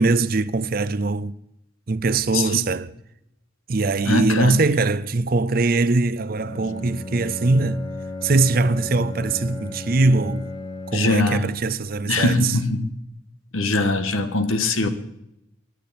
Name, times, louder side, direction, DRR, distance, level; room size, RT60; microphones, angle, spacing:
voice 1, 0.0-1.3 1.9-2.9 3.7-7.9 8.2-10.5 10.9-12.6, right 3 dB, 45° right, 0.5 m, -21 dB
voice 2, 4.1-4.5 10.9-11.5 12.1-12.9 13.5-14.9, left 2 dB, 90° left, 1.5 m, -21 dB
Bowed string instrument, 6.3-11.4, left 2 dB, 20° left, 1.1 m, -35 dB
23.5 x 10.0 x 4.3 m
head